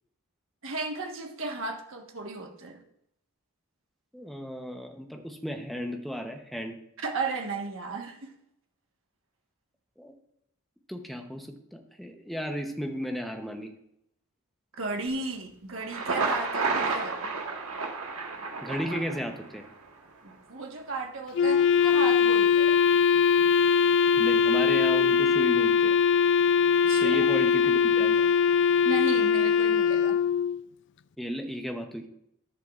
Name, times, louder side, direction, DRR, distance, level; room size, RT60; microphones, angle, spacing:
voice 1, 0.6-2.8 7.0-8.3 14.8-17.2 20.2-22.8 26.9-27.2 28.8-30.2, right 3 dB, 60° right, 3 dB, 1.4 m, -34 dB
voice 2, 4.1-6.8 10.0-10.1 10.9-13.7 18.6-19.6 24.2-26.0 27.0-28.3 31.2-32.1, equal, ahead, 3 dB, 0.8 m, -34 dB
Thunder, 15.7-19.7, right 4 dB, 80° right, 1.4 m, -31 dB
Wind instrument woodwind instrument, 21.4-30.6, left 6 dB, 55° left, 0.3 m, -22 dB
12.5 x 11.0 x 2.5 m, 0.78 s
head